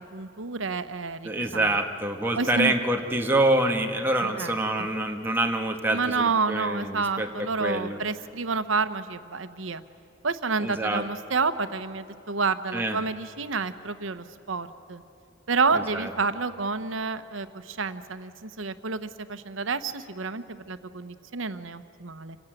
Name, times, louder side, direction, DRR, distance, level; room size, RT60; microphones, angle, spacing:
voice 1, 0.0-1.7 2.3-2.7 4.2-4.9 5.9-9.8 10.2-15.0 15.5-22.4, right 4 dB, 90° right, 11 dB, 1.0 m, -29 dB
voice 2, 1.2-8.0 10.6-11.0 12.7-13.0 15.7-16.1, right 1 dB, 10° right, 3 dB, 1.6 m, -26 dB
26.5 x 17.0 x 9.2 m, 2.9 s
head